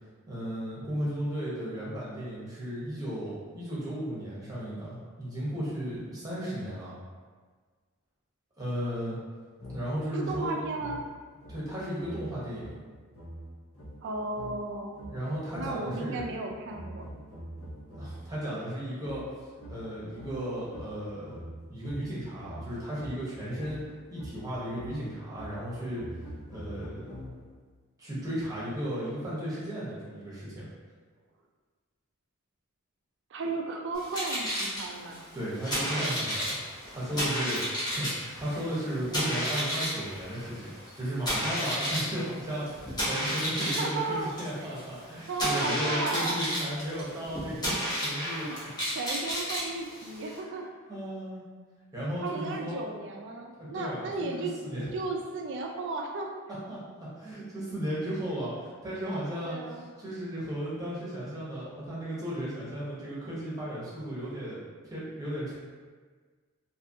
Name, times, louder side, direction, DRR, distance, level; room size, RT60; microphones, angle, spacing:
voice 1, 0.3-6.9 8.6-9.2 9.7-10.6 11.5-12.7 15.1-16.2 17.9-19.2 19.7-21.4 21.7-23.8 24.1-26.0 26.5-27.1 28.0-30.6 35.3-36.6 36.9-37.6 37.9-47.7 48.0-48.5 50.5-50.6 50.9-51.4 51.9-52.8 53.6-54.9 56.7-65.5, equal, 15° right, -9 dB, 0.7 m, -35 dB
sound 1, 9.6-18.3 19.0-27.7, equal, 75° left, 0.6 m, -45 dB
voice 2, 10.1-11.1 14.0-15.1 15.6-17.0 33.3-35.2 43.6-44.8 45.3-46.4 48.4-48.6 48.9-50.6 52.2-54.5 54.9-56.3 59.4-59.9, right 3 dB, 50° right, 2 dB, 0.3 m, -34 dB
sound 2, 33.9-50.4, equal, 20° left, 0.7 m, -33 dB
2.7 x 2.4 x 2.6 m, 1.5 s
head